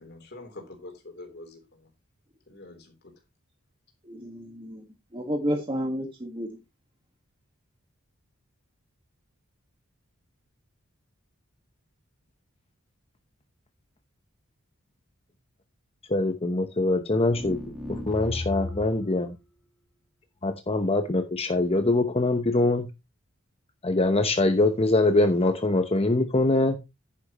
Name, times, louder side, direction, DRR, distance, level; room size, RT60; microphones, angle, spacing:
voice 1, 0.0-1.9 2.5-3.1, left 2 dB, 50° left, 3.7 m, -45 dB
voice 2, 4.0-4.8 5.1-6.5, equal, 25° right, 1.7 m, -31 dB
voice 3, 16.1-19.4 20.4-22.9 23.8-26.8, left 2 dB, 30° left, 0.9 m, -23 dB
sound 1, 17.3-19.1, left 2 dB, 5° right, 2.2 m, -35 dB
10.5 x 10.0 x 3.0 m
head